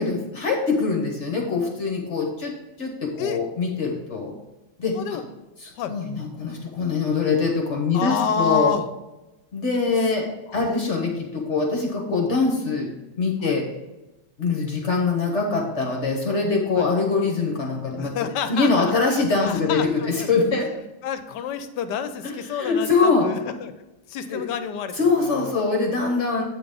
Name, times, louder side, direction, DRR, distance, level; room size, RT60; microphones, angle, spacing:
voice 1, 0.0-4.3 4.8-5.2 5.6-8.8 9.5-10.3 10.5-13.7 14.4-20.7 22.2-23.3 24.3-24.4 24.9-26.4, left 4 dB, 45° left, 0 dB, 1.3 m, -23 dB
voice 2, 7.9-8.8 10.6-10.8 13.4-13.5 16.8-16.9 18.0-20.1 21.0-23.7 24.1-24.9, left 7 dB, 80° left, 10 dB, 1.2 m, -28 dB
8.4 x 3.9 x 5.1 m, 1.0 s
omnidirectional pair, 1.9 m